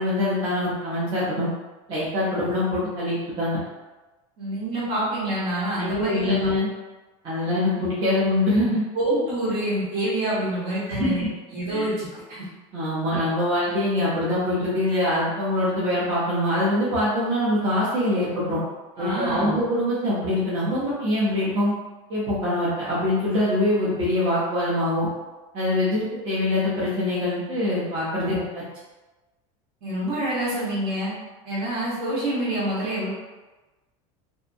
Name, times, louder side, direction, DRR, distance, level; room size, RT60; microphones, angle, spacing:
voice 1, 0.0-1.5 1.9-3.6 5.8-6.7 7.2-8.8 10.9-11.3 11.7-11.8 12.7-18.6 19.0-21.7 22.1-25.1 25.5-28.6, left 1 dB, 30° right, -9 dB, 0.6 m, -24 dB
voice 2, 4.4-6.5 8.9-11.3 11.5-12.4 19.0-19.6 28.3-28.5 29.8-31.1 31.4-33.1, right 1 dB, 60° right, -7 dB, 1.2 m, -27 dB
2.6 x 2.1 x 2.5 m, 1.2 s
supercardioid pair, 160°, 17 cm